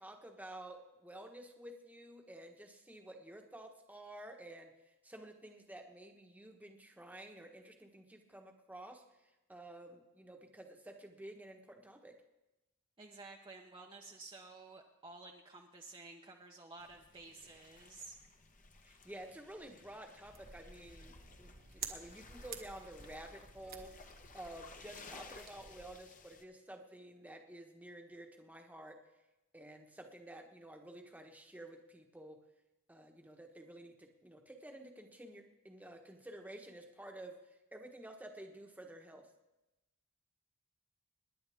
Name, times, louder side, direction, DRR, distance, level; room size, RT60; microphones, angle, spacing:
voice 1, 0.0-9.0 9.5-12.2 18.8-29.0 29.5-32.4 32.9-39.3, right 1 dB, 5° right, 3 dB, 1.2 m, -51 dB
voice 2, 13.0-18.2, right 3 dB, 25° right, 0 dB, 0.9 m, -53 dB
sound 1, 16.8-26.4, left 4 dB, 35° left, 1.1 m, -58 dB
sound 2, 20.3-26.0, right 6 dB, 45° right, 1.4 m, -51 dB
26.5 x 10.5 x 3.6 m, 1.0 s
head